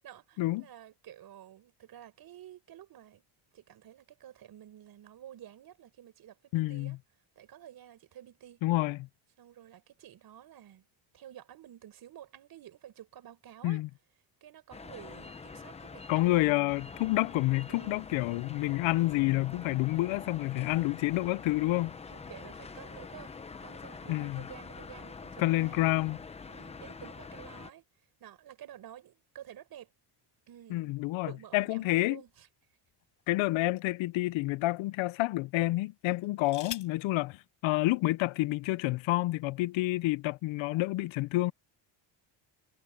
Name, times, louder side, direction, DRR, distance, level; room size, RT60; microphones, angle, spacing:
voice 1, 0.0-3.2 3.5-7.0 7.4-8.6 9.4-10.9 11.1-13.8 14.4-16.7 17.7-18.1 22.1-25.8 26.5-27.8 28.2-29.9 30.5-30.9 31.2-32.5 36.3-36.5, right 11 dB, 50° right, 5.9 m, -51 dB
voice 2, 6.5-7.0 8.6-9.1 13.6-13.9 16.1-22.0 24.1-24.4 25.4-26.2 30.7-32.2 33.3-41.5, left 19 dB, 75° left, 0.6 m, -29 dB
sound 1, 14.7-27.7, left 4 dB, 15° left, 0.7 m, -45 dB
sound 2, 32.3-33.5 34.2-34.4 36.0-37.1 38.2-38.3 38.6-39.0, left 9 dB, 40° left, 5.1 m, -46 dB
cardioid pair, 175°, 47 cm